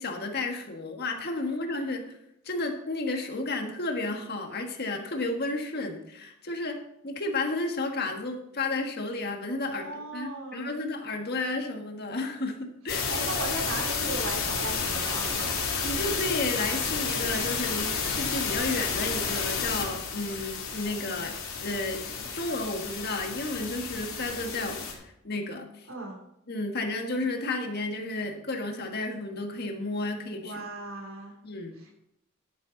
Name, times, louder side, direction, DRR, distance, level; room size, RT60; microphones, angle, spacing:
voice 1, 0.0-2.2 2.4-6.8 7.0-13.1 15.8-25.9 26.5-30.6 31.4-31.7, left 2 dB, 50° left, 3 dB, 1.6 m, -32 dB
voice 2, 9.6-10.7 13.1-15.6 25.9-26.2 30.4-31.4 31.8-31.9, right 2 dB, 70° right, 0 dB, 3.0 m, -37 dB
sound 1, 12.9-24.9, left 5 dB, 75° left, 2.9 m, -31 dB
10.5 x 9.8 x 4.0 m, 0.79 s
head